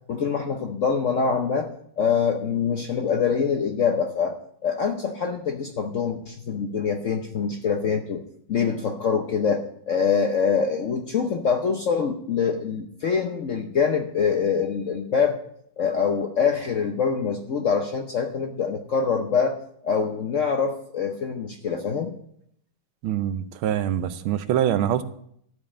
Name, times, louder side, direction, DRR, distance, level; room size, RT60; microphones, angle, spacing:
voice 1, 0.1-1.7 2.0-4.4 4.6-8.2 8.5-15.4 15.8-19.6 19.8-22.1, left 6 dB, 60° left, 4 dB, 0.8 m, -24 dB
voice 2, 23.0-25.0, right 10 dB, 85° right, 12 dB, 1.6 m, -24 dB
12.5 x 5.2 x 8.7 m, 0.69 s
omnidirectional pair, 2.2 m